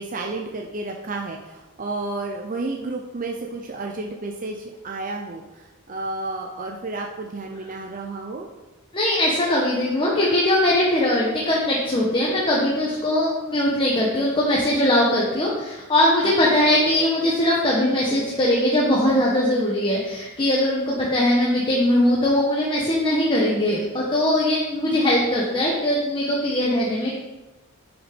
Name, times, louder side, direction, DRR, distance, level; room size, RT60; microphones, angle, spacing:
voice 1, 0.0-8.5 16.2-16.3, right 2 dB, 40° right, 1 dB, 0.7 m, -31 dB
voice 2, 8.9-27.2, left 1 dB, 25° left, -5 dB, 1.4 m, -21 dB
9.4 x 5.9 x 5.3 m, 1.1 s
head